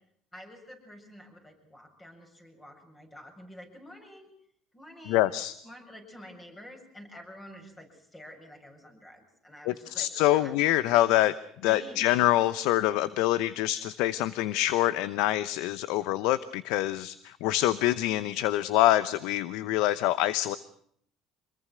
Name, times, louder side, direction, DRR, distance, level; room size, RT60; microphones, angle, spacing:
voice 1, 0.3-4.3 4.7-5.3 5.6-10.6 11.7-12.4, left 1 dB, 15° left, 4 dB, 7.4 m, -49 dB
voice 2, 5.1-5.5 9.7-11.3 11.6-20.6, left 15 dB, 80° left, 16 dB, 0.9 m, -25 dB
26.0 x 21.5 x 6.3 m, 0.67 s
cardioid pair, 130°, 0 cm